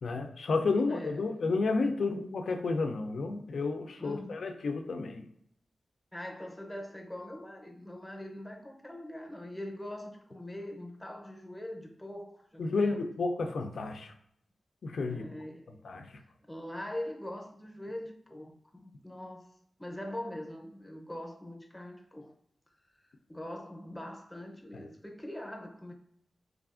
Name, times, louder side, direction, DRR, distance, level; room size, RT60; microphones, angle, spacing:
voice 1, 0.0-5.2 12.6-14.1 14.8-15.2 15.8-16.1, left 3 dB, 75° left, 0.4 m, -31 dB
voice 2, 0.9-1.4 4.0-4.4 6.1-13.0 15.1-15.7 16.5-19.5 19.8-22.3 23.3-25.9, left 1 dB, 10° left, 0.6 m, -42 dB
3.4 x 2.4 x 2.4 m
wide cardioid pair, 80°, 0 cm